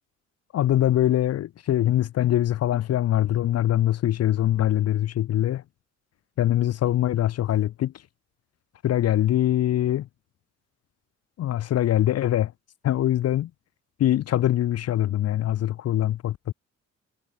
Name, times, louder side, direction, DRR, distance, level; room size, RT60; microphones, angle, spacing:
voice 1, 0.5-5.6 6.4-7.9 8.8-10.1 11.4-12.5 12.8-13.5 14.0-16.5, left 12 dB, 55° left, 0.6 m, -23 dB
cardioid pair, 90°, 30 cm